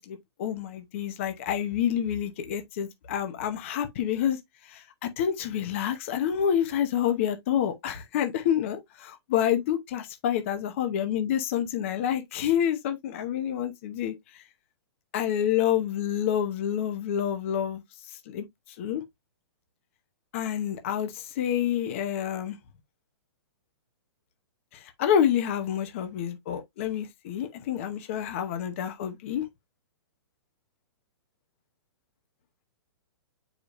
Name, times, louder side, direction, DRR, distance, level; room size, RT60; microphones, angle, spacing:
voice 1, 0.1-8.8 9.3-14.4 15.1-17.8 18.1-19.0 20.3-22.6 24.7-29.5, left 9 dB, 30° left, 0.8 m, -28 dB
8.0 x 5.0 x 2.5 m
hypercardioid pair, 175°, 14 cm